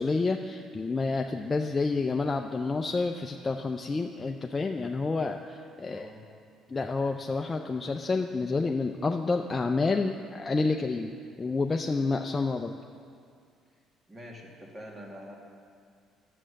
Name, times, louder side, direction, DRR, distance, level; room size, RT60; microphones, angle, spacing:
voice 1, 0.0-6.1 6.7-12.7, left 3 dB, 25° left, 3 dB, 0.5 m, -29 dB
voice 2, 5.8-6.2 14.1-15.4, equal, 25° right, -1 dB, 2.1 m, -45 dB
11.0 x 7.6 x 6.4 m, 2.3 s
cardioid pair, 90°, 0 cm